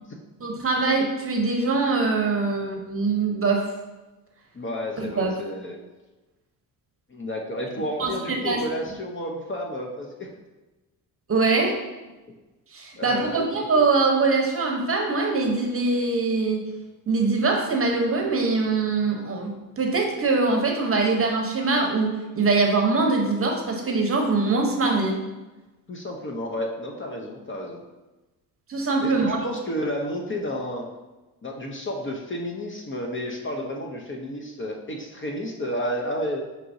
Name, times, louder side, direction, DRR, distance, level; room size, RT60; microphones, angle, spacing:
voice 1, 0.4-3.7 5.0-5.3 8.0-8.1 8.4-8.6 11.3-11.8 12.7-16.7 17.1-25.2 28.7-29.4, right 3 dB, 30° right, 1 dB, 0.8 m, -23 dB
voice 2, 4.5-5.8 7.1-10.3 13.0-13.4 25.9-27.8 29.0-30.9 31.4-36.4, equal, 30° left, 1 dB, 0.6 m, -31 dB
6.0 x 3.0 x 2.6 m, 1.1 s
cardioid pair, 75°, 42 cm